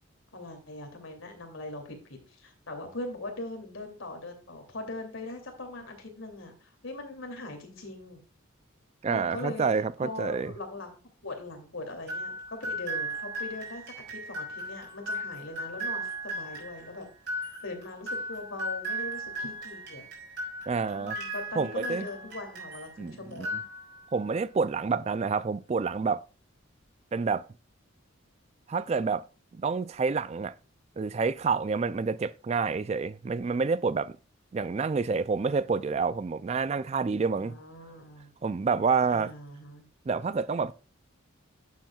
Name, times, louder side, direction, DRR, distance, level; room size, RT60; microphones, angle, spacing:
voice 1, 0.3-8.2 9.1-9.7 10.0-11.0 11.2-17.1 17.6-20.0 20.9-23.6 37.4-38.3 39.1-39.9, left 2 dB, 75° left, 2.8 m, -41 dB
voice 2, 9.0-10.5 20.7-21.2 21.6-22.1 23.0-23.5 24.1-26.2 27.1-27.4 28.7-29.2 29.5-30.5 31.0-34.1 34.5-37.5 38.4-39.3 40.1-40.7, right 5 dB, 30° right, 0.3 m, -28 dB
sound 1, 12.1-22.9 23.3-24.2, equal, 55° right, 4.4 m, -36 dB
11.5 x 7.3 x 2.3 m
head